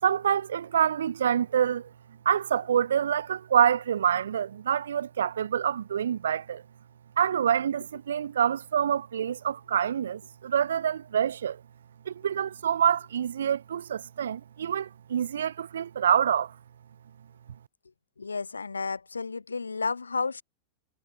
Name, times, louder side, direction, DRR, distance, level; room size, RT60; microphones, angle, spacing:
voice 1, 0.0-1.9 2.2-6.6 7.2-11.6 12.0-16.5, right 9 dB, 65° right, 3.1 m, -26 dB
voice 2, 18.2-20.4, left 4 dB, 75° left, 4.3 m, -32 dB
figure-of-eight pair, 90°, 0 cm